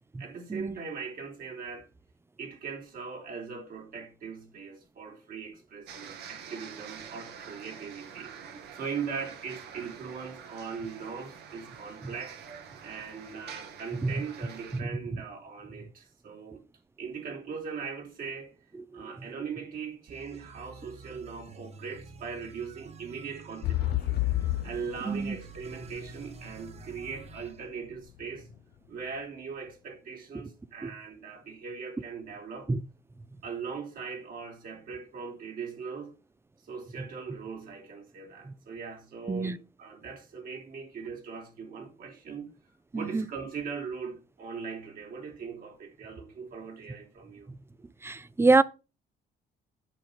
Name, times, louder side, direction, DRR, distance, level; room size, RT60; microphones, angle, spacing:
voice 1, 0.2-1.9 2.4-12.4 12.8-16.6 17.0-18.5 18.9-24.2 24.6-28.5 28.9-32.7 33.4-36.1 36.7-42.5 42.9-47.5, right 5 dB, 60° right, 4.1 m, -40 dB
sound 1, 5.9-14.8, right 7 dB, 75° right, 2.4 m, -46 dB
sound 2, 20.1-27.6, right 5 dB, 40° right, 1.2 m, -49 dB
sound 3, 23.6-27.5 28.1-28.2, left 16 dB, 70° left, 0.6 m, -30 dB
voice 2, 25.1-25.4 30.3-30.4 30.8-30.9 32.7-32.8 38.5-38.6 39.3-39.6 42.9-43.3 47.5-47.6 48.0-48.6, right 3 dB, 15° right, 0.6 m, -26 dB
9.1 x 7.0 x 5.7 m
cardioid pair, 110°, 17 cm